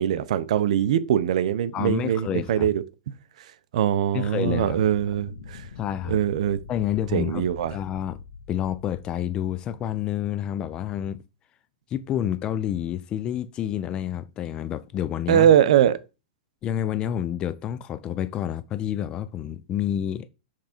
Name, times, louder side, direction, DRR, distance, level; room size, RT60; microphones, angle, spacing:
voice 1, 0.0-2.8 3.7-5.6 6.1-6.6 7.1-7.7 15.3-16.0, right 10 dB, 60° right, 0.8 m, -22 dB
voice 2, 1.7-2.7 4.1-4.8 5.8-6.2 6.7-8.2 8.5-11.2 11.9-15.5 16.6-20.3, left 11 dB, 20° left, 0.4 m, -29 dB
sound 1, 4.3-10.1, left 5 dB, 80° left, 1.5 m, -43 dB
7.5 x 3.6 x 4.4 m
hypercardioid pair, 155°, 4 cm